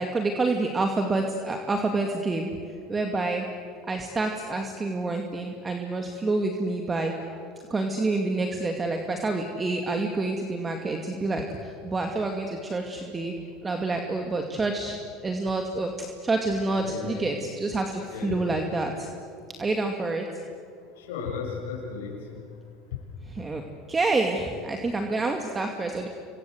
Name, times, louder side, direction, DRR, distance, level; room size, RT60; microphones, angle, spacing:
voice 1, 0.0-2.5 2.9-3.5 3.9-7.4 7.7-13.3 13.6-15.0 15.2-19.1 19.6-20.3 23.3-23.6 23.9-26.1, right 2 dB, 20° right, 3 dB, 2.4 m, -28 dB
voice 2, 16.7-17.5 18.1-18.5 20.9-22.3, left 5 dB, 85° left, -2 dB, 6.7 m, -35 dB
27.5 x 24.5 x 8.1 m, 2.3 s
supercardioid pair, 100°, 0 cm